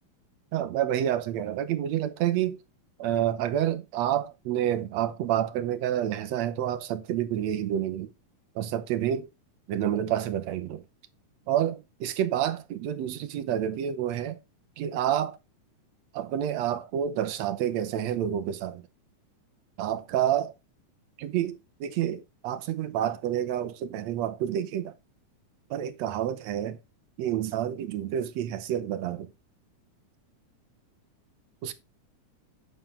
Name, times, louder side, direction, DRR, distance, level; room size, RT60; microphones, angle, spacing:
voice 1, 0.5-2.6 3.0-8.1 8.6-9.3 9.7-10.8 11.5-14.4 14.8-15.4 16.1-18.8 19.8-20.5 21.2-24.9 25.7-26.8 27.2-29.3 31.6-31.7, right 11 dB, 70° right, 1.8 m, -28 dB
9.1 x 6.8 x 3.6 m
omnidirectional pair, 3.6 m